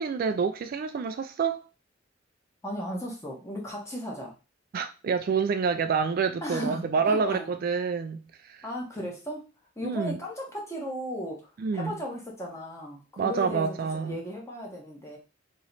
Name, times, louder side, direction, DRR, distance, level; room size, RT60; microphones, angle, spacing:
voice 1, 0.0-1.6 4.7-8.7 9.0-9.1 9.8-10.2 11.6-12.0 13.2-14.2, right 5 dB, 50° right, 0.3 m, -28 dB
voice 2, 2.6-4.3 6.4-7.5 8.6-9.4 9.8-11.4 11.7-15.2, equal, 15° left, 1.2 m, -36 dB
3.0 x 3.0 x 4.0 m
head